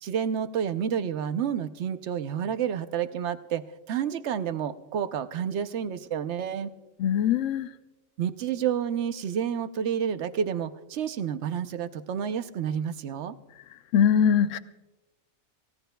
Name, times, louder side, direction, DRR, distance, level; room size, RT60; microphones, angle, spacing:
voice 1, 0.0-3.6 3.9-6.7 8.2-13.3, right 8 dB, 60° right, 0.9 m, -29 dB
voice 2, 7.0-7.7 13.9-14.6, left 8 dB, 70° left, 1.0 m, -22 dB
28.5 x 17.0 x 2.3 m
omnidirectional pair, 1.4 m